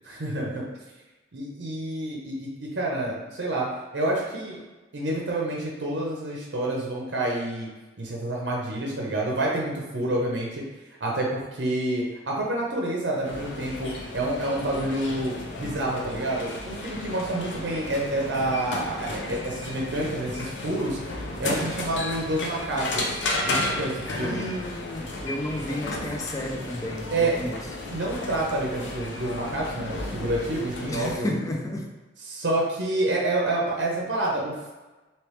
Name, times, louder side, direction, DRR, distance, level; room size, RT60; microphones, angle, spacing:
voice 1, 0.1-0.6 1.3-3.7 3.9-4.6 4.9-7.7 8.0-10.6 11.0-21.0 21.4-24.4 27.1-27.5 27.9-31.3 32.3-34.7, right 1 dB, 70° right, -2 dB, 0.6 m, -28 dB
sound 1, 13.2-31.2, left 2 dB, 90° left, 0.6 m, -33 dB
voice 2, 24.2-27.6 30.9-31.9, left 1 dB, 20° left, 2 dB, 0.4 m, -32 dB
3.2 x 2.9 x 3.1 m, 1.2 s
head